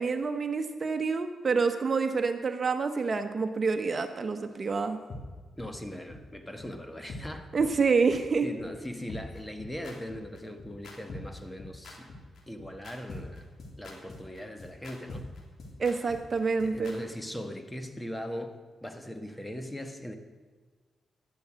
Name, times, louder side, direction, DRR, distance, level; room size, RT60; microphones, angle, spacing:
voice 1, 0.0-5.0 7.5-8.5 15.8-17.0, right 4 dB, 45° right, 8 dB, 1.0 m, -27 dB
sound 1, 5.1-5.2 5.6-5.7 6.1-6.2 6.6-6.7 7.1-7.2 7.6-7.7 8.1-8.2 8.6-8.7 9.1-16.9, left 2 dB, 60° left, 3.1 m, -43 dB
voice 2, 5.6-7.5 8.4-12.1 12.5-13.5 13.8-15.3 16.6-20.1, equal, 10° left, 7 dB, 1.7 m, -40 dB
12.0 x 10.5 x 6.4 m, 1.4 s
supercardioid pair, 55°, 0 cm